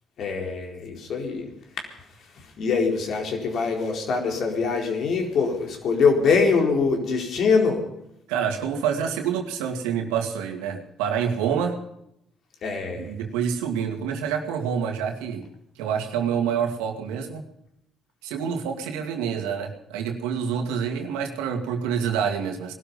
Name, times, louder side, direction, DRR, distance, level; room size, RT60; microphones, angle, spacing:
voice 1, 0.2-1.5 1.7-7.8 12.6-13.1, left 5 dB, 65° left, 2 dB, 4.3 m, -24 dB
voice 2, 8.3-11.8 12.9-15.5 15.8-17.4 18.2-22.7, right 7 dB, 85° right, 4 dB, 2.3 m, -27 dB
20.0 x 12.5 x 5.4 m, 0.79 s
supercardioid pair, 60°, 0 cm